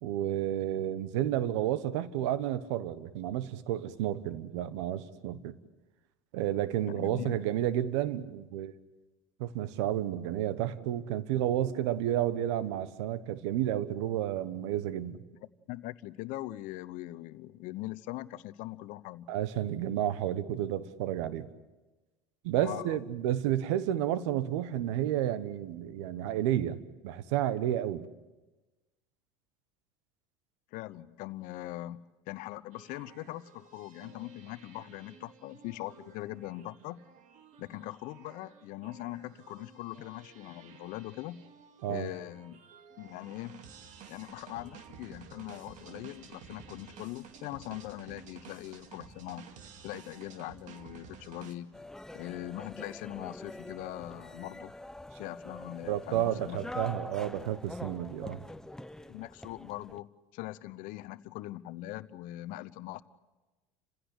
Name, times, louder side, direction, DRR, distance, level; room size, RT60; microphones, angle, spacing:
voice 1, 0.0-5.6 6.3-8.7 9.4-15.2 19.3-21.5 22.4-26.8 27.0-28.1 41.8-42.1 55.9-58.4, right 12 dB, 75° right, 15 dB, 1.2 m, -31 dB
voice 2, 6.9-7.4 15.7-19.3 22.6-23.0 30.7-37.0 37.6-41.4 41.9-42.6 43.0-43.6 44.1-49.4 49.8-51.7 52.1-54.7 55.2-56.8 59.1-63.0, left 16 dB, 60° left, 16 dB, 0.9 m, -41 dB
sound 1, 32.7-51.6, right 6 dB, 55° right, 2.4 m, -53 dB
sound 2, 51.7-60.0, left 1 dB, 5° left, 0.7 m, -45 dB
29.0 x 16.0 x 8.2 m, 1.2 s
hypercardioid pair, 85°, 15 cm